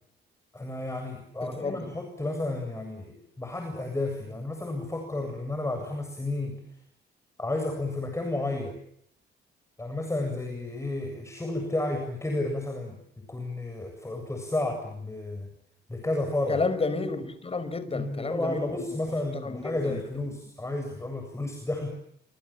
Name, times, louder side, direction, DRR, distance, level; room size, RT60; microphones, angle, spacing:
voice 1, 0.5-6.6 7.4-8.8 9.8-15.5 15.9-16.6 17.9-21.9, left 2 dB, 15° left, 7.8 m, -32 dB
voice 2, 1.4-1.9 16.5-18.8 19.4-20.0, left 3 dB, 30° left, 5.2 m, -31 dB
28.5 x 26.5 x 7.4 m
cardioid pair, 90°, 20 cm